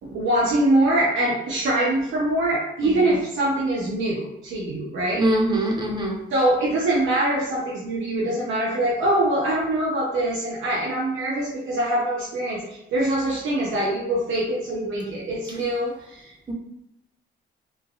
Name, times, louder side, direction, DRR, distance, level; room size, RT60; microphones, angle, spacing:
voice 1, 0.0-5.2 6.3-16.3, right 1 dB, 75° right, -5 dB, 0.7 m, -23 dB
voice 2, 5.2-6.2 16.5-16.6, right 1 dB, 20° right, 0 dB, 0.7 m, -23 dB
3.2 x 2.2 x 2.3 m, 0.85 s
cardioid pair, 90°, 20 cm